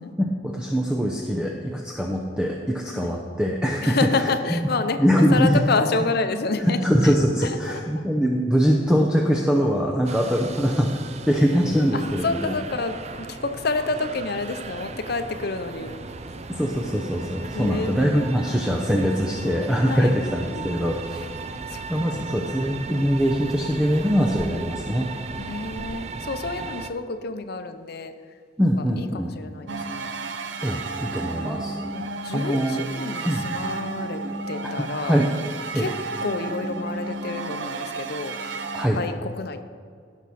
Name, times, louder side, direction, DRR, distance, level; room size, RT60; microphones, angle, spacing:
voice 1, 0.2-4.0 5.0-5.6 6.6-10.9 11.3-12.5 16.5-21.2 21.9-25.1 28.6-29.3 30.6-31.7 32.3-32.9 33.2-33.5 34.8-35.3 35.7-35.9 38.7-39.0, equal, 5° right, 0 dB, 0.7 m, -22 dB
voice 2, 3.8-5.0 5.3-7.1 7.4-7.8 11.9-15.9 17.5-18.4 19.8-20.1 20.5-20.9 21.7-22.3 25.4-28.1 28.6-30.1 31.9-34.2 34.5-35.2 35.7-35.9 36.2-38.4 38.9-39.6, left 3 dB, 60° left, 9 dB, 0.7 m, -29 dB
sound 1, 10.1-26.9, right 4 dB, 35° right, 0.5 m, -36 dB
sound 2, 29.7-38.9, right 3 dB, 85° right, 0.7 m, -32 dB
16.5 x 6.2 x 4.2 m, 2.1 s
head